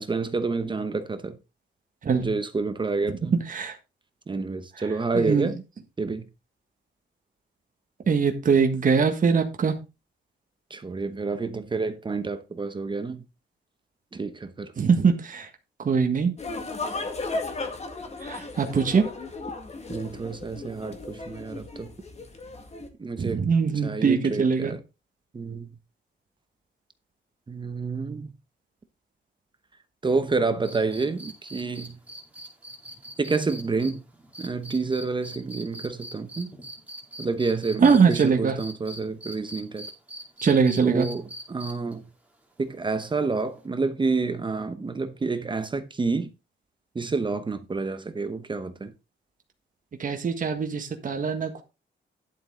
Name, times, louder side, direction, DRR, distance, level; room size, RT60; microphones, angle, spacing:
voice 1, 0.0-1.4 2.2-3.4 4.3-5.6 6.0-6.3 10.7-13.2 14.1-14.7 19.9-21.9 23.0-23.5 23.8-24.8 25.3-25.7 27.5-28.3 30.0-32.0 33.2-34.0 34.4-36.5 37.2-39.9 40.8-42.0 42.6-46.3 46.9-48.9, right 4 dB, 25° right, 0.9 m, -29 dB
voice 2, 5.2-5.5 8.1-9.8 14.8-15.5 15.9-16.3 18.2-19.0 23.2-24.8 37.8-38.5 40.4-41.1 50.0-51.6, right 5 dB, 40° right, 1.7 m, -22 dB
sound 1, 16.4-22.9, left 3 dB, 35° left, 2.0 m, -35 dB
sound 2, 30.6-38.2 38.6-41.9 43.6-43.7, right 1 dB, 5° right, 2.8 m, -41 dB
11.0 x 7.5 x 3.8 m
wide cardioid pair, 150°, 20 cm